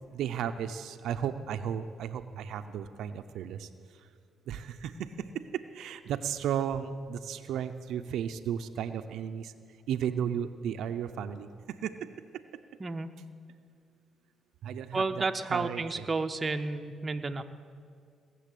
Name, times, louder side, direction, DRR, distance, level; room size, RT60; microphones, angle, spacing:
voice 1, 0.1-3.7 4.5-9.5 9.9-12.1 14.6-16.1, right 8 dB, 80° right, 8 dB, 0.6 m, -34 dB
voice 2, 14.9-17.4, right 3 dB, 30° right, 6 dB, 0.7 m, -31 dB
18.5 x 6.9 x 8.4 m, 2.2 s
cardioid pair, 90°, 0 cm